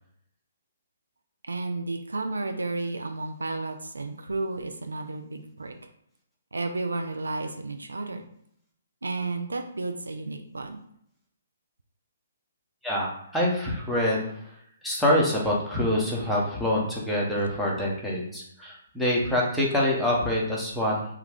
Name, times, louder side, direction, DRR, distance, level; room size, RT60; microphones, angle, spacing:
voice 1, 1.5-5.7 6.5-8.3 9.0-10.8, right 3 dB, 80° right, 5 dB, 0.3 m, -32 dB
voice 2, 12.8-14.3 14.8-21.1, left 1 dB, ahead, -5 dB, 0.7 m, -25 dB
2.3 x 2.3 x 3.4 m, 0.71 s
figure-of-eight pair, 130°, 0 cm